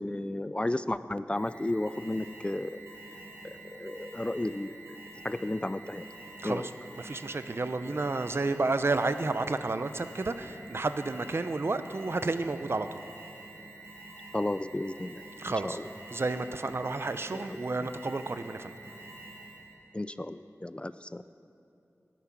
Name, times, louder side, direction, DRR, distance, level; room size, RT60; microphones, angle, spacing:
voice 1, 0.0-2.8 3.4-5.0 5.2-6.0 6.4-6.6 14.3-15.7 17.3-17.4 17.8-17.9 19.9-21.2, left 1 dB, 20° left, 14 dB, 0.4 m, -33 dB
Alarm, 1.4-19.8, right 2 dB, 75° right, 3.2 m, -48 dB
voice 2, 6.4-6.7 7.0-13.0 15.4-15.8 16.1-18.7, right 3 dB, 55° right, 11 dB, 0.6 m, -31 dB
18.5 x 10.0 x 6.0 m, 2.8 s
wide cardioid pair, 75°, 5 cm